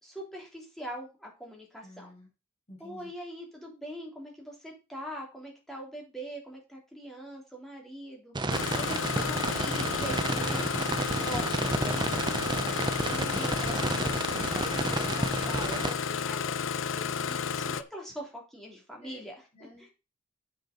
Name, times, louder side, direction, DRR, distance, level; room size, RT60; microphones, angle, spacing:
voice 1, 0.0-2.1 2.8-8.3 8.8-12.1 13.0-19.4 19.8-19.9, equal, ahead, -1 dB, 3.3 m, -43 dB
voice 2, 1.8-2.3 2.7-3.1 19.0-19.2 19.5-19.9, equal, 30° left, 0 dB, 5.8 m, -50 dB
sound 1, 8.3-15.9, right 2 dB, 25° right, 0.6 m, -31 dB
Engine starting, 8.5-17.8, left 6 dB, 70° left, 0.6 m, -32 dB
7.8 x 6.7 x 5.1 m, 0.29 s
head